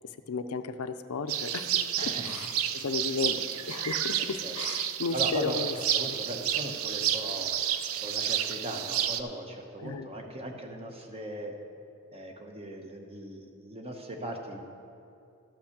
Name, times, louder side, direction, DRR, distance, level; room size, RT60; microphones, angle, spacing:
voice 1, 0.3-5.7 9.8-10.1, left 4 dB, 90° left, 10 dB, 0.5 m, -34 dB
sound 1, 1.3-9.2, right 10 dB, 70° right, 0.5 m, -30 dB
voice 2, 5.1-5.6 5.9-7.5 8.0-11.5 12.1-14.6, right 1 dB, 25° right, 2 dB, 1.0 m, -38 dB
12.5 x 5.8 x 6.6 m, 2.7 s
head